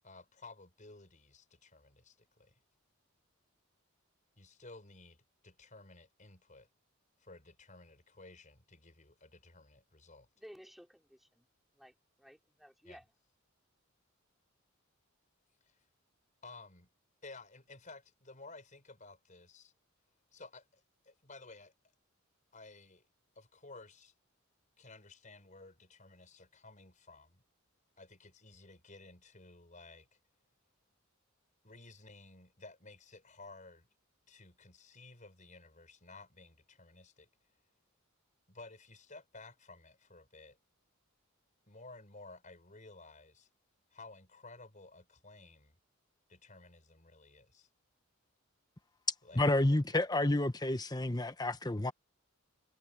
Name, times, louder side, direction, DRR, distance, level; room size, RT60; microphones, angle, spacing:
voice 1, 0.0-2.6 4.4-6.7 7.2-10.3 12.8-13.0 15.7-15.8 16.4-16.9 17.2-19.7 20.3-21.7 22.5-23.0 23.3-24.1 24.8-27.4 28.0-30.1 31.6-33.9 34.3-37.3 38.5-40.6 41.7-43.5 43.9-45.8 46.3-47.7 49.2-49.4, left 3 dB, 40° left, 4.9 m, -55 dB
voice 2, 10.4-11.4 11.7-13.0, equal, ahead, 4.1 m, -56 dB
voice 3, 49.3-51.9, left 1 dB, 20° left, 1.2 m, -30 dB
head